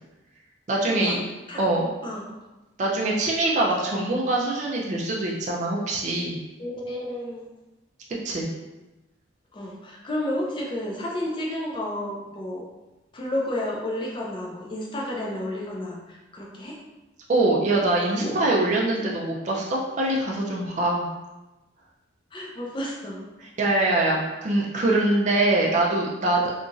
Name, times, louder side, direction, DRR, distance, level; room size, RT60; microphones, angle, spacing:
voice 1, 0.7-1.2 1.6-1.9 2.8-6.4 8.2-8.5 17.3-21.1 23.4-26.5, right 2 dB, 40° right, -2 dB, 0.4 m, -23 dB
voice 2, 6.6-7.5 9.5-12.6 13.1-16.8 19.0-19.1 22.3-23.2, left 1 dB, 25° left, -3 dB, 0.4 m, -31 dB
2.9 x 2.4 x 2.5 m, 1.1 s
head